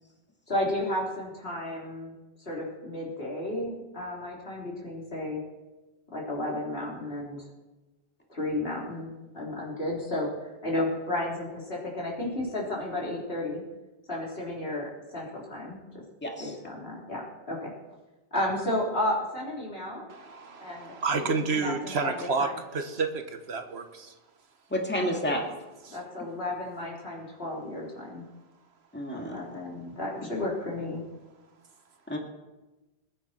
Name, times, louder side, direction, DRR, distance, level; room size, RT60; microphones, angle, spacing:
voice 1, 0.5-2.2 2.5-5.4 6.1-7.5 8.3-13.6 14.1-15.8 16.4-17.7 18.3-20.0 20.6-22.5 25.9-28.2 29.1-31.0, left 1 dB, 60° left, -4 dB, 3.8 m, -33 dB
voice 2, 16.2-16.5 24.7-25.5 28.9-29.4 32.1-32.2, equal, 10° left, 1 dB, 2.1 m, -30 dB
voice 3, 20.1-24.1 25.9-26.0, right 4 dB, 70° right, 7 dB, 1.5 m, -30 dB
21.0 x 10.5 x 4.4 m, 1.1 s
omnidirectional pair, 1.1 m